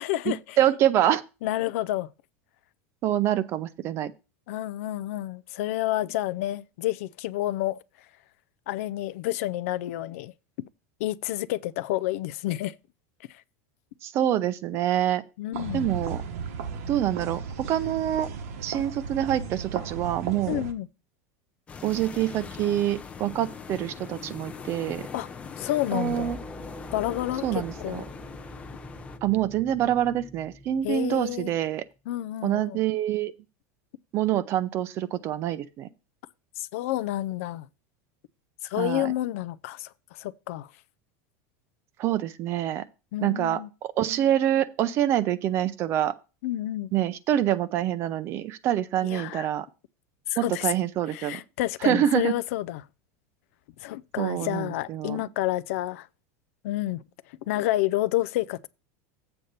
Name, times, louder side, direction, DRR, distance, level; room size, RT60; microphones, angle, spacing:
voice 1, 0.0-0.6 1.4-2.1 4.5-7.8 8.7-10.3 11.0-12.7 15.4-15.9 20.5-20.9 25.1-25.3 25.6-26.3 26.9-28.0 30.8-31.5 32.1-32.8 36.6-37.7 38.6-40.7 43.1-43.7 46.4-46.9 49.0-49.5 50.3-50.7 51.1-52.9 53.8-56.1 56.6-57.0 57.5-58.7, left 15 dB, 65° left, 0.4 m, -29 dB
voice 2, 0.6-1.2 3.0-4.1 14.0-15.2 15.7-16.2 16.9-18.3 18.6-20.6 21.8-25.1 25.9-26.4 27.4-28.0 29.2-31.8 32.4-33.3 34.1-35.9 38.8-39.1 42.0-42.8 43.2-46.1 46.9-49.7 50.4-51.4 51.8-52.3 54.2-55.2, right 11 dB, 35° right, 0.5 m, -26 dB
sound 1, 15.5-20.7, right 6 dB, 80° right, 1.3 m, -35 dB
sound 2, 21.7-29.2, left 6 dB, 15° left, 0.6 m, -41 dB
sound 3, 25.9-31.8, equal, ahead, 1.2 m, -44 dB
7.9 x 4.2 x 6.6 m
supercardioid pair, 165°, 8 cm